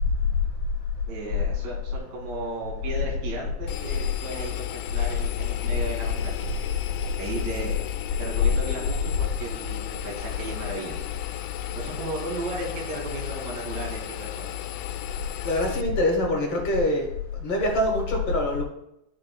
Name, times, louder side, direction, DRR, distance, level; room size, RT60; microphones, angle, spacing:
voice 1, 1.1-6.5 7.2-7.8 8.2-11.1 11.7-14.5, right 2 dB, 70° right, -3 dB, 4.6 m, -35 dB
Engine, 3.7-15.8, left 13 dB, 85° left, 3.0 m, -34 dB
voice 2, 15.4-17.0 17.4-18.6, left 1 dB, 55° left, -1 dB, 1.7 m, -24 dB
14.5 x 6.5 x 2.3 m, 0.83 s
omnidirectional pair, 5.2 m